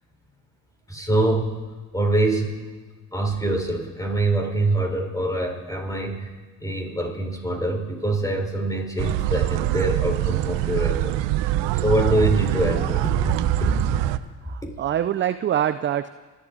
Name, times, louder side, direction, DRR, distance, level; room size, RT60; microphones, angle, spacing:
voice 1, 0.9-1.6 1.9-2.6 3.1-6.3 6.6-13.3 13.6-13.9, right 1 dB, 5° left, 1 dB, 4.5 m, -24 dB
sound 1, 9.0-14.2, right 15 dB, 65° right, 0.8 m, -24 dB
voice 2, 14.4-16.1, right 11 dB, 30° right, 13 dB, 0.4 m, -24 dB
27.5 x 12.0 x 4.0 m, 1.4 s
supercardioid pair, 80°, 45 cm